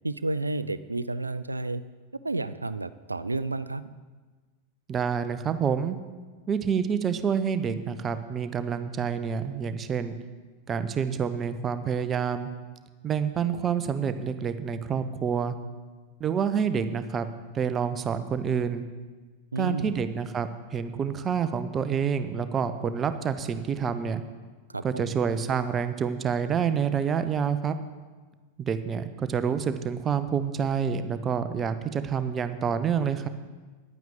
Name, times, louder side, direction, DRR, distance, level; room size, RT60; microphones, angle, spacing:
voice 1, 0.0-1.8 2.2-3.8 19.5-20.0 24.7-25.1, right 2 dB, 80° right, 15 dB, 0.5 m, -31 dB
voice 2, 4.9-6.0 6.5-10.1 10.7-12.5 13.0-15.5 16.2-17.3 17.5-18.8 19.6-24.2 24.8-27.8 28.6-33.3, right 7 dB, 25° right, 11 dB, 0.8 m, -28 dB
10.5 x 9.2 x 7.2 m, 1.4 s
figure-of-eight pair, 90°, 0 cm